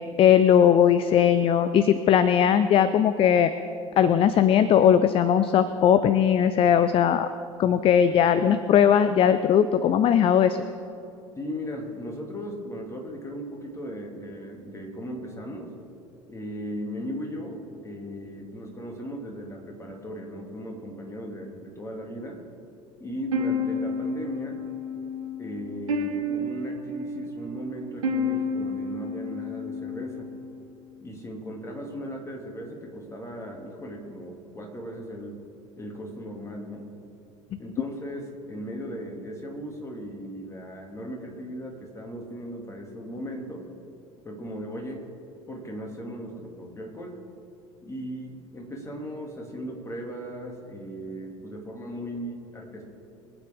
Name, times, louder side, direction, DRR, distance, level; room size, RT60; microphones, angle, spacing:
voice 1, 0.2-3.5 4.0-7.3 7.6-10.6, left 9 dB, 35° left, 12 dB, 0.5 m, -19 dB
voice 2, 11.4-15.7 16.3-22.4 23.0-24.6 25.4-30.3 31.0-35.4 35.8-36.8 37.6-43.7 44.2-45.1 45.5-47.2 47.8-52.8, equal, 15° left, 0 dB, 2.7 m, -37 dB
sound 1, 23.3-30.4, left 2 dB, 75° right, 2.1 m, -30 dB
23.5 x 9.0 x 3.7 m, 2.6 s
figure-of-eight pair, 70°, 17 cm